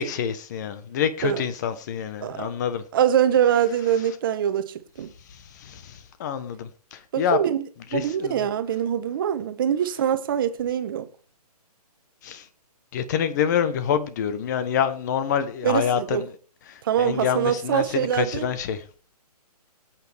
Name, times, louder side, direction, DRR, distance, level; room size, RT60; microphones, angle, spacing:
voice 1, 0.0-2.8 5.6-7.4 7.9-8.4 12.2-12.4 12.9-16.3 16.7-18.8, left 8 dB, 25° left, 1.2 m, -27 dB
voice 2, 2.9-5.1 7.1-7.6 7.9-11.1 15.6-16.2 16.8-18.5, right 9 dB, 35° right, 1.2 m, -23 dB
22.5 x 8.7 x 3.5 m
hypercardioid pair, 160°, 20 cm